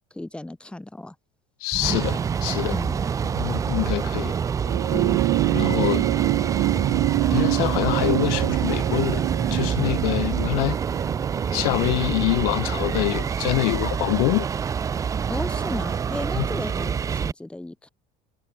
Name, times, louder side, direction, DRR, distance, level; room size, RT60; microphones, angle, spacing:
voice 1, 0.1-1.2 2.7-3.1 4.9-5.2 5.6-5.9 15.3-17.9, left 1 dB, 5° left, 1.8 m, -34 dB
voice 2, 1.6-2.7 3.3-4.3 5.5-6.1 7.3-10.8 11.5-14.5 16.4-16.5, left 31 dB, 80° left, 0.5 m, -25 dB
sound 1, 1.7-17.3, right 7 dB, 15° right, 0.3 m, -26 dB
sound 2, 4.6-13.3 14.5-14.6, right 27 dB, 65° right, 2.4 m, -26 dB
supercardioid pair, 125°, 19 cm